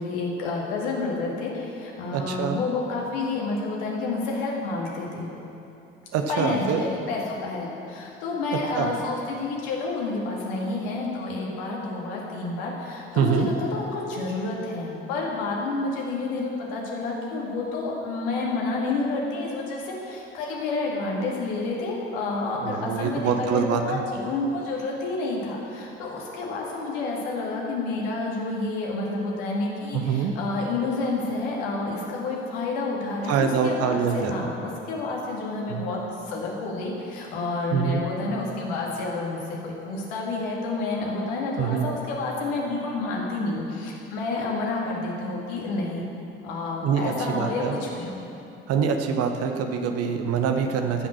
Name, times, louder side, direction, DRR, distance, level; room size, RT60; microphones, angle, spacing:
voice 1, 0.0-5.3 6.3-36.0 36.2-46.0 46.4-48.2, left 3 dB, 70° left, -2 dB, 2.2 m, -29 dB
voice 2, 2.1-2.6 6.1-6.8 8.7-8.9 13.2-13.5 22.6-24.0 29.9-30.3 33.3-34.5 35.7-35.8 37.7-38.1 41.6-41.9 46.8-47.8 48.7-51.1, right 6 dB, 55° right, 5 dB, 1.1 m, -25 dB
14.5 x 6.1 x 6.5 m, 2.8 s
figure-of-eight pair, 55°, 29 cm